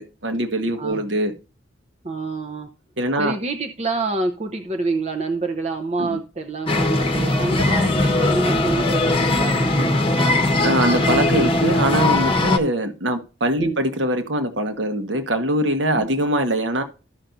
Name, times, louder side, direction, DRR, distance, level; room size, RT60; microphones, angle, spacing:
voice 1, 0.0-1.3 3.0-3.4 6.0-6.2 10.6-16.8, right 1 dB, 75° right, 1.2 m, -22 dB
voice 2, 2.0-2.7 3.2-10.4 13.6-13.8 16.0-16.1, right 3 dB, 35° right, 0.8 m, -27 dB
sound 1, 6.7-12.6, left 2 dB, 30° left, 1.2 m, -19 dB
14.0 x 5.8 x 2.6 m
head